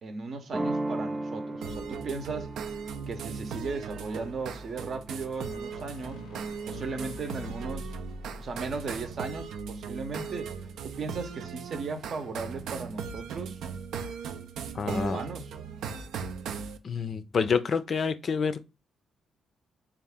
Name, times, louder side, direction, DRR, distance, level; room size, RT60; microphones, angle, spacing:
voice 1, 0.0-2.5 3.1-8.0 8.4-10.5 10.8-13.6 14.8-15.5, right 4 dB, 55° right, 0.7 m, -36 dB
sound 1, 0.5-6.1, right 1 dB, 20° right, 0.5 m, -37 dB
sound 2, 1.6-16.8, right 6 dB, 80° right, 0.4 m, -38 dB
sound 3, 5.1-10.4, left 1 dB, 90° left, 0.6 m, -47 dB
voice 2, 14.7-15.2 16.8-18.6, left 5 dB, 45° left, 0.4 m, -28 dB
3.6 x 2.4 x 3.4 m
cardioid pair, 90°, 0 cm